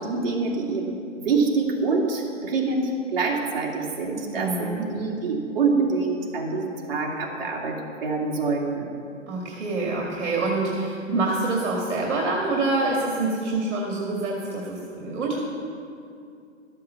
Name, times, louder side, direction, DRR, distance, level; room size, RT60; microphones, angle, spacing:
voice 1, 0.0-8.9, right 4 dB, 50° right, -2 dB, 2.3 m, -26 dB
voice 2, 4.3-4.9 9.3-15.5, right 3 dB, 65° right, -1 dB, 2.1 m, -26 dB
13.5 x 7.6 x 6.9 m, 2.5 s
hypercardioid pair, 165°, 38 cm